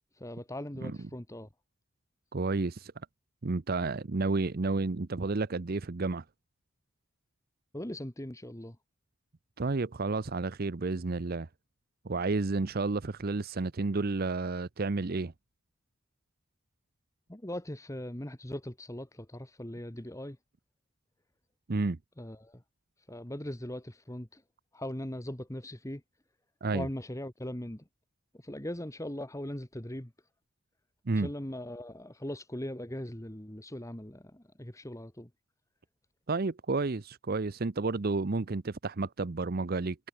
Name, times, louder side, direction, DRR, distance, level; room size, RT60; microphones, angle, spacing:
voice 1, 0.1-1.5 7.7-8.8 17.3-20.4 22.2-22.6 23.1-24.4 24.7-26.0 26.7-27.8 28.3-30.1 31.1-35.3, left 1 dB, 15° left, 1.5 m, -40 dB
voice 2, 2.3-2.9 3.4-6.2 9.6-11.5 12.0-15.3 21.7-22.0 26.6-26.9 31.1-31.3 36.3-40.0, right 3 dB, 45° right, 0.7 m, -31 dB
head